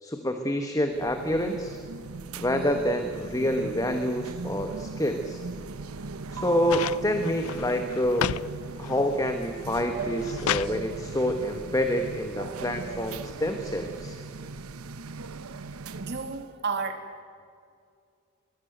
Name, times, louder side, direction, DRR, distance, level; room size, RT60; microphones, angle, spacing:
voice 1, 0.0-1.8 2.4-5.4 6.3-8.3 8.8-14.2, equal, 15° left, 6 dB, 1.4 m, -27 dB
sound 1, 0.9-16.5, right 3 dB, 85° right, 1.0 m, -38 dB
sound 2, 6.7-8.5 8.8-9.4 9.9-10.8 12.0-12.1, left 8 dB, 80° left, 0.5 m, -31 dB
voice 2, 16.0-17.0, right 4 dB, 50° right, 6 dB, 2.6 m, -32 dB
24.5 x 21.0 x 9.1 m, 2.3 s
head